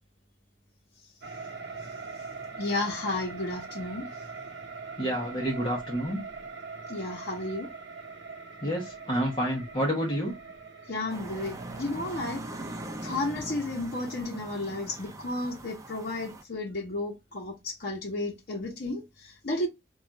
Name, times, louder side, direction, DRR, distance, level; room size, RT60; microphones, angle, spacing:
sound 1, 1.2-15.4, right 4 dB, 65° right, 0.7 m, -43 dB
voice 1, 2.6-4.1 6.9-7.7 10.9-12.4 13.0-19.7, left 2 dB, 55° left, 0.8 m, -33 dB
voice 2, 5.0-6.2 8.6-10.4, equal, 30° left, 0.8 m, -29 dB
sound 2, 11.1-16.4, right 2 dB, 15° right, 0.4 m, -41 dB
2.4 x 2.3 x 3.9 m
head